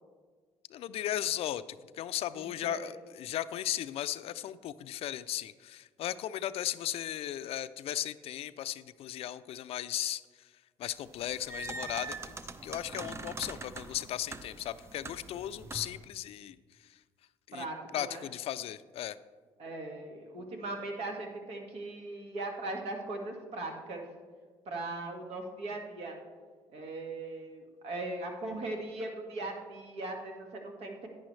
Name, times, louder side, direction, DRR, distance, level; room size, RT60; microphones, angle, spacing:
voice 1, 0.7-10.5 10.8-12.4 12.6-16.6 16.9-17.0 17.5-17.7 17.9-19.2, left 12 dB, 65° left, 15 dB, 0.4 m, -36 dB
voice 2, 2.3-2.9 17.5-18.2 19.6-24.0 24.7-26.2 26.7-31.1, right 2 dB, 65° right, 2 dB, 1.8 m, -39 dB
sound 1, 11.1-16.0, right 3 dB, 25° right, 0.6 m, -43 dB
10.5 x 9.5 x 3.2 m, 1.5 s
cardioid pair, 95°, 11 cm